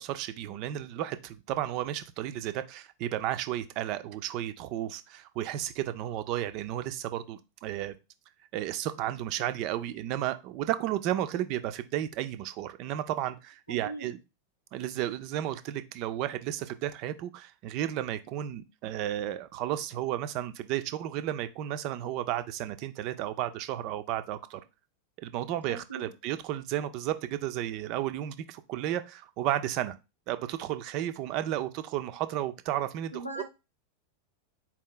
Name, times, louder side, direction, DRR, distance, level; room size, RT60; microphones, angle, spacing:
voice 1, 0.0-7.9 8.5-14.2 14.7-24.6 25.2-30.0 30.3-33.4, right 12 dB, 40° right, 0.4 m, -33 dB
voice 2, 13.7-14.1 25.7-26.1 33.1-33.4, right 2 dB, 90° left, 0.9 m, -39 dB
4.3 x 3.0 x 3.8 m
figure-of-eight pair, 90°, 0 cm